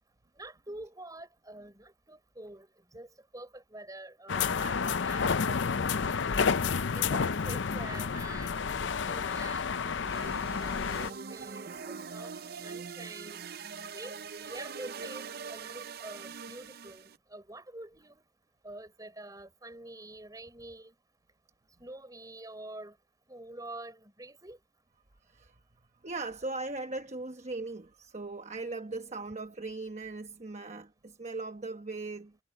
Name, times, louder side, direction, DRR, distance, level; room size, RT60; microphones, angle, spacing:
voice 1, 0.4-6.5 6.9-8.6 9.0-9.6 10.6-12.4 12.6-13.4 13.8-18.2 18.6-20.9 21.8-23.0 23.3-24.6, right 2 dB, 20° right, 5.4 m, -47 dB
sound 1, 4.3-11.1, left 5 dB, 70° left, 0.6 m, -30 dB
sound 2, 10.0-17.2, right 5 dB, 55° right, 0.6 m, -43 dB
voice 2, 25.2-25.6 26.0-32.4, right 3 dB, 35° right, 1.1 m, -39 dB
head